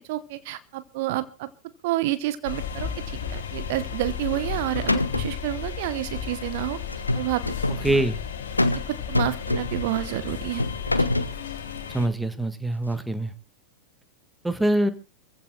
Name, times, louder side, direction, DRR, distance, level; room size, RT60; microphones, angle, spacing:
voice 1, 0.0-1.5 1.8-6.8 7.1-7.4 7.8-7.9 8.9-10.6 10.9-11.1, right 16 dB, 50° right, 14 dB, 0.9 m, -29 dB
sound 1, 2.4-12.1, left 7 dB, 60° left, 2.9 m, -33 dB
sound 2, 4.2-4.6 4.9-5.4 6.9-7.8 8.6-8.9 9.2-9.9 10.6-11.4, left 2 dB, 85° left, 1.0 m, -25 dB
voice 2, 7.8-8.2 11.9-13.3 14.4-14.9, right 1 dB, 5° right, 11 dB, 1.6 m, -24 dB
28.0 x 15.5 x 2.3 m, 0.31 s
figure-of-eight pair, 90°, 0 cm